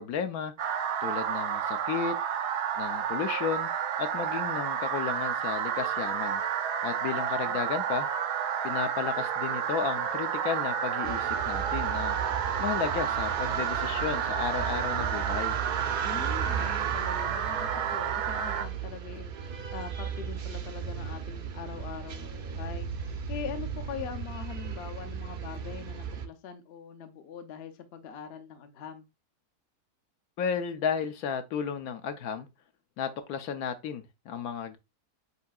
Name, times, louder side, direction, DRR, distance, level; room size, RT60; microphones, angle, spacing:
voice 1, 0.0-2.2 2.8-3.7 4.0-6.4 6.8-8.1 8.6-12.2 12.6-15.6 30.4-32.5 33.0-34.8, left 7 dB, 75° left, 1.1 m, -33 dB
sound 1, 0.6-18.7, right 8 dB, 90° right, 1.2 m, -30 dB
sound 2, 11.0-26.3, right 7 dB, 65° right, 0.5 m, -36 dB
voice 2, 16.0-29.1, left 8 dB, 55° left, 0.8 m, -42 dB
8.2 x 2.8 x 2.3 m
omnidirectional pair, 1.7 m